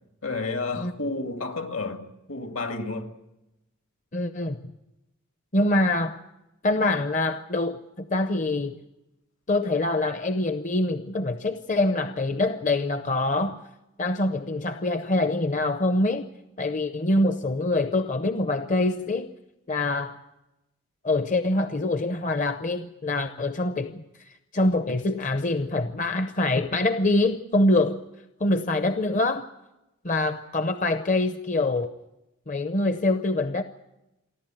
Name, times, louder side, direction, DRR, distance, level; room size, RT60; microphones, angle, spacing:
voice 1, 0.2-3.1, left 3 dB, 70° left, 2.2 m, -31 dB
voice 2, 4.1-4.6 5.5-6.2 6.6-8.8 9.5-13.6 14.0-16.3 16.6-19.3 19.7-20.2 21.0-28.0 28.4-29.5 30.0-31.9 32.5-33.6, left 2 dB, 35° left, 0.7 m, -25 dB
29.0 x 11.5 x 9.0 m
head